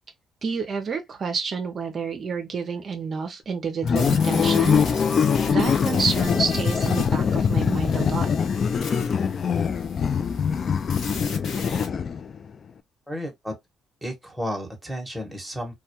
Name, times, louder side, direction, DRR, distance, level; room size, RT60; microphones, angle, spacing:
voice 1, 0.4-5.0 5.5-8.3, right 5 dB, 50° right, 0.5 m, -29 dB
sound 1, 3.8-12.4, left 6 dB, 50° left, 0.3 m, -23 dB
sound 2, 3.9-11.9, left 4 dB, 70° left, 0.7 m, -38 dB
voice 2, 13.1-13.5 14.0-15.7, equal, ahead, 1.0 m, -32 dB
2.2 x 2.2 x 2.8 m
cardioid pair, 90°, 0 cm